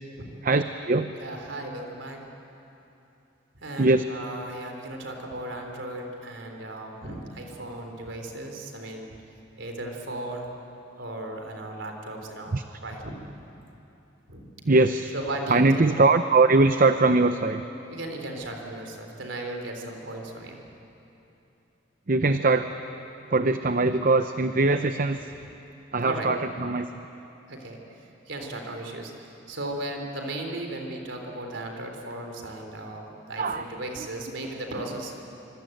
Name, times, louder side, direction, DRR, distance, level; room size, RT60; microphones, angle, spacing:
voice 1, 0.4-1.1 3.8-4.0 12.5-12.6 14.6-15.1 15.5-17.6 22.1-22.7 23.3-25.3 25.9-26.9 33.4-33.6 34.0-34.1, right 3 dB, 45° right, 9 dB, 0.7 m, -21 dB
voice 2, 1.2-2.2 3.6-9.2 9.6-10.5 11.0-13.2 14.3-14.5 15.1-15.8 17.9-20.6 26.0-26.3 27.5-35.1, right 1 dB, 75° right, 3 dB, 3.8 m, -36 dB
25.0 x 24.5 x 9.2 m, 3.0 s
head